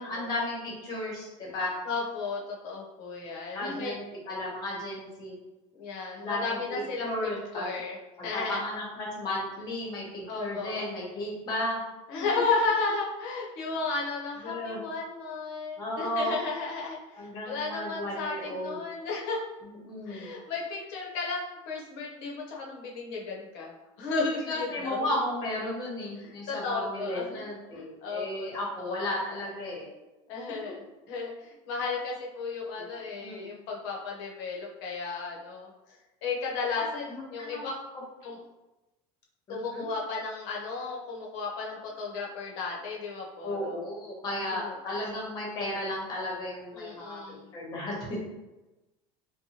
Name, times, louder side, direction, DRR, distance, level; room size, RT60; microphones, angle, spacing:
voice 1, 0.0-1.7 3.5-4.0 4.3-5.4 6.1-7.7 8.2-11.8 14.4-14.8 15.8-16.4 17.2-18.8 19.6-20.3 24.5-29.9 32.8-33.5 36.8-36.9 37.1-37.7 37.9-38.0 39.5-39.9 43.4-48.2, left 1 dB, 30° left, -3 dB, 1.0 m, -34 dB
voice 2, 1.8-4.0 5.8-7.1 7.5-7.9 8.2-8.6 10.3-10.8 12.1-19.4 20.1-23.7 24.0-25.1 26.2-27.4 27.7-28.5 28.8-29.1 30.3-35.7 36.2-37.7 38.2-38.4 39.5-43.6 44.5-44.7 46.7-47.5, left 4 dB, 70° left, -2 dB, 0.8 m, -34 dB
2.8 x 2.2 x 2.8 m, 1.0 s
cardioid pair, 155°, 14 cm